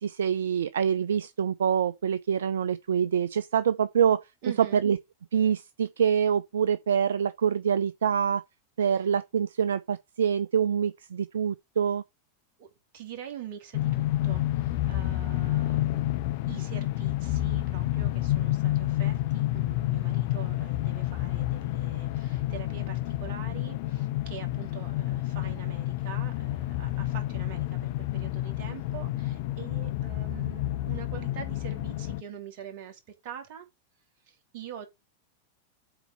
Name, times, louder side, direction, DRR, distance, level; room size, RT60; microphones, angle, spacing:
voice 1, 0.0-4.3 4.6-5.0 5.3-8.4 8.8-12.0, right 8 dB, 65° right, 0.4 m, -25 dB
voice 2, 4.4-4.8 8.9-9.0 12.6-16.1 16.5-33.7 34.3-34.9, right 9 dB, 50° right, 2.9 m, -44 dB
sound 1, 13.7-32.2, left 15 dB, 50° left, 0.6 m, -29 dB
7.7 x 4.1 x 6.7 m
figure-of-eight pair, 90°, 0 cm